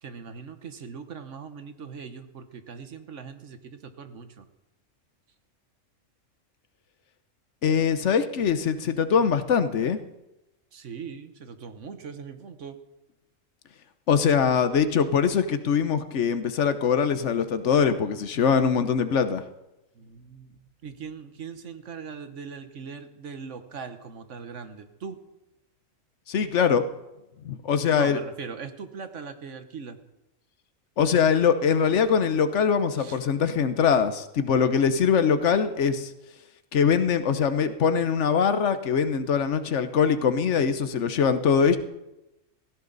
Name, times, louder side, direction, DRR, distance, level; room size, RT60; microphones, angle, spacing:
voice 1, 0.0-4.5 10.7-12.8 19.9-25.2 27.9-30.0 33.0-33.2, right 6 dB, 70° right, 9 dB, 1.4 m, -40 dB
voice 2, 7.6-10.0 14.1-19.4 26.3-26.8 27.4-28.2 31.0-36.1 36.7-41.8, left 6 dB, 65° left, 11 dB, 1.2 m, -22 dB
16.5 x 15.5 x 4.0 m, 0.96 s
omnidirectional pair, 1.3 m